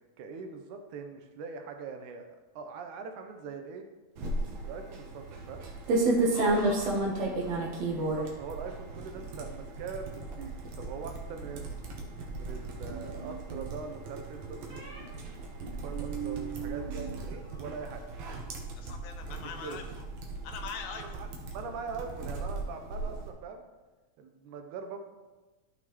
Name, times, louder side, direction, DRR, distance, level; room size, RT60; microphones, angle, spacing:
voice 1, 0.2-2.3 2.6-3.8 4.6-5.7 6.3-6.9 7.9-11.8 12.4-15.1 15.6-18.0 19.6-19.8 21.1-23.6 24.2-25.0, right 5 dB, 80° right, 5 dB, 2.1 m, -42 dB
sound 1, 4.2-23.3, right 2 dB, 65° right, 2.0 m, -34 dB
voice 2, 6.3-6.9 18.8-20.0 20.4-21.3, left 6 dB, 75° left, 5 dB, 2.2 m, -42 dB
sound 2, 12.9-13.7 14.7-15.0 15.6-17.2 17.4-18.0, right 8 dB, 40° right, 2.7 m, -40 dB
13.0 x 6.0 x 3.0 m, 1.2 s
omnidirectional pair, 3.7 m